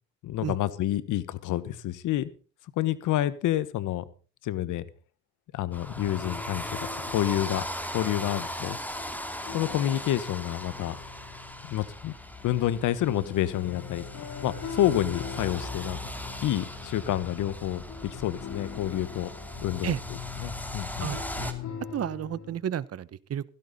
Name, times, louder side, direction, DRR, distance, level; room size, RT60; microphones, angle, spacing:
voice 1, 0.2-2.3 2.8-4.0 4.4-4.9 5.5-6.8 7.1-7.6 7.9-8.8 9.5-10.9 11.6-12.1 12.4-14.0 14.4-16.0 16.4-19.3 19.6-19.9 20.4-21.2, left 13 dB, 85° left, 17 dB, 1.3 m, -28 dB
sound 1, 5.7-21.5, equal, 5° left, 2.8 m, -39 dB
sound 2, 5.8-22.6, left 7 dB, 65° left, 4.1 m, -42 dB
voice 2, 21.0-21.5 21.9-23.4, right 10 dB, 55° right, 19 dB, 1.0 m, -32 dB
16.5 x 16.0 x 4.1 m, 0.38 s
cardioid pair, 90°, 30 cm